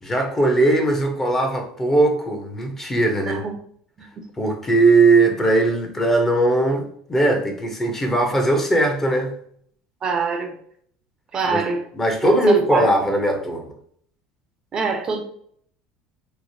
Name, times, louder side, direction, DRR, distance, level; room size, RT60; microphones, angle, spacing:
voice 1, 0.0-3.4 4.4-6.8 7.1-9.3 11.5-11.6 11.9-13.7, right 2 dB, 20° left, 3 dB, 0.7 m, -19 dB
voice 2, 3.3-3.6 4.0-4.2 10.0-10.5 11.3-11.8 12.2-12.9 14.7-15.2, right 4 dB, 40° right, 5 dB, 0.5 m, -25 dB
3.0 x 2.1 x 2.7 m, 0.63 s
hypercardioid pair, 85°, 2 cm